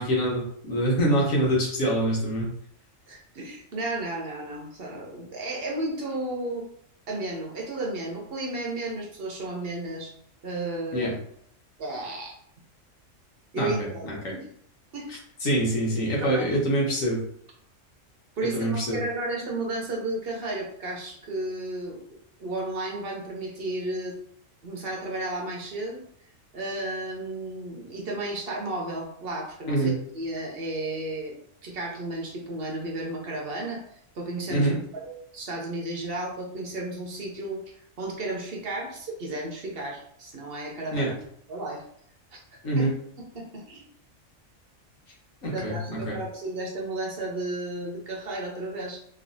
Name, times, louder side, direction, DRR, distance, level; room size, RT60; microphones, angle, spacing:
voice 1, 0.0-2.5 10.9-11.1 13.6-14.3 15.1-17.2 18.5-19.0 29.7-29.9 34.5-34.8 40.9-41.1 42.6-42.9 45.4-46.2, right 1 dB, 90° left, -3 dB, 1.4 m, -25 dB
voice 2, 3.1-6.6 7.1-10.1 10.4-11.1 11.8-12.4 13.5-14.5 14.9-15.1 16.2-16.5 18.4-22.0 22.4-24.2 24.6-26.0 26.5-31.3 31.6-33.8 34.1-37.6 38.0-41.2 41.5-41.8 42.3-42.4 42.8-42.9 43.3-43.8 45.5-49.0, right 2 dB, 55° right, -1 dB, 0.8 m, -33 dB
3.1 x 2.7 x 2.6 m, 0.67 s
omnidirectional pair, 1.3 m